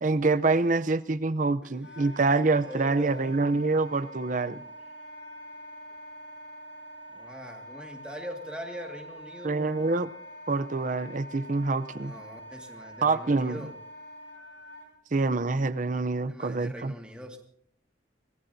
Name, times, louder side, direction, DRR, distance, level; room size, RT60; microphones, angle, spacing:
voice 1, 0.0-4.6 9.4-10.1 10.5-12.1 13.0-13.6 15.1-16.9, right 3 dB, 45° right, 13 dB, 0.6 m, -26 dB
voice 2, 1.6-2.0 2.6-3.3 7.1-10.0 11.9-13.7 16.3-17.4, equal, 5° right, 2 dB, 1.9 m, -42 dB
Wind instrument woodwind instrument, 1.8-14.9, equal, 85° left, 6.7 m, -45 dB
26.0 x 19.0 x 2.7 m, 0.63 s
head